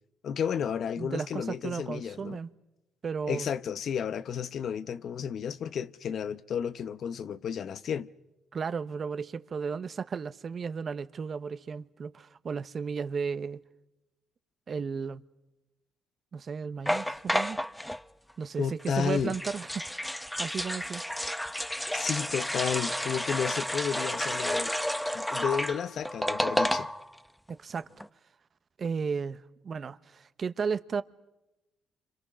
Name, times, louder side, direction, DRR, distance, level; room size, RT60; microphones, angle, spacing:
voice 1, 0.2-2.4 3.3-8.1 18.6-19.4 21.9-24.7 25.1-26.9, left 7 dB, 60° left, 0.9 m, -32 dB
voice 2, 1.0-2.5 3.0-3.5 8.5-13.6 14.7-15.2 16.3-17.6 18.4-19.8 20.4-21.0 27.5-27.9 28.8-31.0, right 5 dB, 50° right, 1.1 m, -34 dB
sound 1, 16.9-18.0 18.8-27.2 27.5-27.6 27.8-28.1, equal, 5° left, 0.8 m, -31 dB
29.0 x 26.5 x 6.3 m
supercardioid pair, 60°, 0 cm